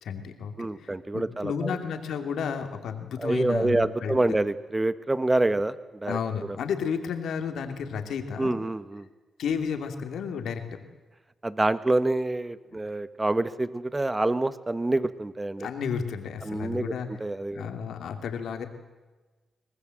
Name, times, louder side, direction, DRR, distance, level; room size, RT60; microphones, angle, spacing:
voice 1, 0.0-4.1 6.1-8.6 9.4-10.6 15.6-17.1 17.5-18.7, left 6 dB, 80° left, 6 dB, 2.7 m, -32 dB
voice 2, 0.6-1.8 3.2-6.2 6.5-6.6 8.4-9.1 11.4-15.7 16.4-17.7, right 2 dB, 20° right, 13 dB, 1.5 m, -27 dB
24.5 x 19.5 x 7.8 m, 1.3 s
cardioid pair, 60°, 0 cm